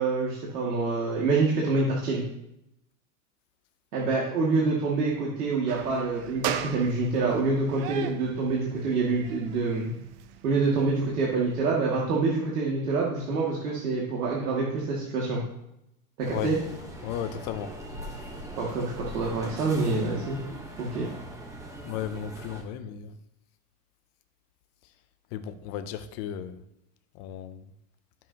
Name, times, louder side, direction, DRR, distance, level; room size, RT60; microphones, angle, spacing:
voice 1, 0.0-2.2 3.9-9.9 10.4-15.4 16.2-16.6 18.6-20.4 20.8-21.1, right 3 dB, 90° right, -4 dB, 2.3 m, -26 dB
sound 1, 5.7-11.7, right 9 dB, 40° right, 0.7 m, -39 dB
sound 2, 16.2-22.6, right 1 dB, 5° right, 1.0 m, -41 dB
voice 2, 17.0-17.7 21.8-23.1 25.3-26.6 27.2-27.6, left 9 dB, 25° left, 11 dB, 0.4 m, -34 dB
12.5 x 7.2 x 2.9 m, 0.83 s
supercardioid pair, 145°, 45 cm